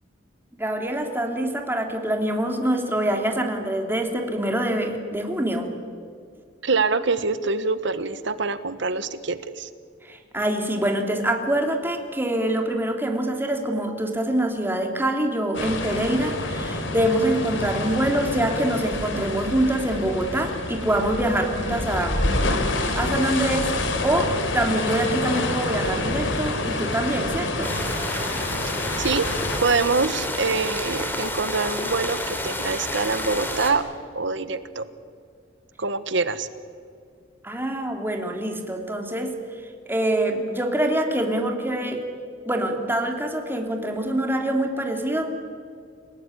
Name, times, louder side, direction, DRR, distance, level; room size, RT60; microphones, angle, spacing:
voice 1, 0.5-5.7 10.0-22.2 22.6-23.8 24.0-27.7 37.4-42.0 42.4-45.3, right 1 dB, 10° right, 3 dB, 3.2 m, -25 dB
voice 2, 6.6-9.7 29.0-29.3 29.6-33.9 34.1-34.9 35.8-36.5, right 4 dB, 70° right, 13 dB, 1.4 m, -25 dB
sound 1, 15.5-29.6, left 2 dB, 75° left, 3.6 m, -27 dB
sound 2, 27.6-33.7, left 1 dB, 10° left, 3.2 m, -29 dB
29.0 x 18.0 x 9.9 m, 2.3 s
head